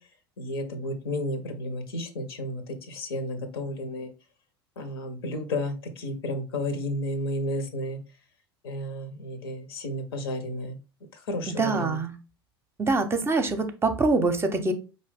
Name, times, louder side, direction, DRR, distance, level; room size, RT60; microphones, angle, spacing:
voice 1, 0.4-4.1 4.8-8.0 8.6-10.8 11.1-12.0, left 1 dB, 70° left, 8 dB, 0.9 m, -32 dB
voice 2, 11.6-12.1 12.8-14.7, right 3 dB, 20° right, 7 dB, 0.7 m, -24 dB
4.7 x 2.7 x 3.4 m, 0.32 s
figure-of-eight pair, 75°, 13 cm